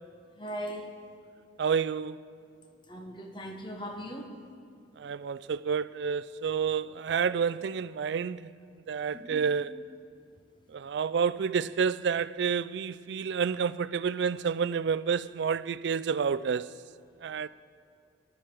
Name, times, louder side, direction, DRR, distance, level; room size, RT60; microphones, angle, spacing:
voice 1, 0.4-0.9 2.9-4.3 9.1-9.4, equal, 25° left, 1.2 m, -39 dB
voice 2, 1.6-2.2 5.0-8.5 8.9-9.8 10.7-16.7 17.2-17.5, right 6 dB, 60° right, 0.3 m, -29 dB
18.0 x 12.5 x 4.5 m
head